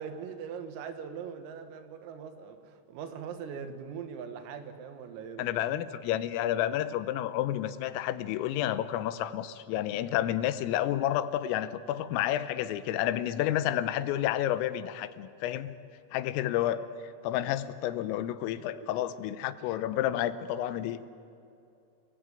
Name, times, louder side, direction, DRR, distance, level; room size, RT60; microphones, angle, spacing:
voice 1, 0.0-5.9 18.6-19.2, right 7 dB, 85° right, 8 dB, 4.3 m, -41 dB
voice 2, 5.4-15.7 16.1-16.8 17.2-21.1, left 12 dB, 85° left, 13 dB, 3.5 m, -30 dB
29.5 x 20.5 x 9.2 m, 2.6 s
omnidirectional pair, 6.0 m